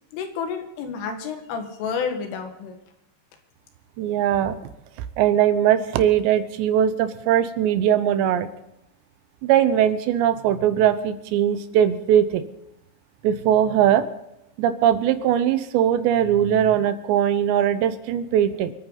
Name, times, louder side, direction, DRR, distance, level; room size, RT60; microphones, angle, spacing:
voice 1, 0.1-2.8, left 6 dB, 90° left, 4 dB, 4.3 m, -30 dB
voice 2, 4.0-4.6 5.2-8.5 9.4-12.4 13.2-14.1 14.6-18.7, right 10 dB, 75° right, 11 dB, 2.9 m, -20 dB
28.0 x 9.4 x 4.0 m, 0.88 s
omnidirectional pair, 5.6 m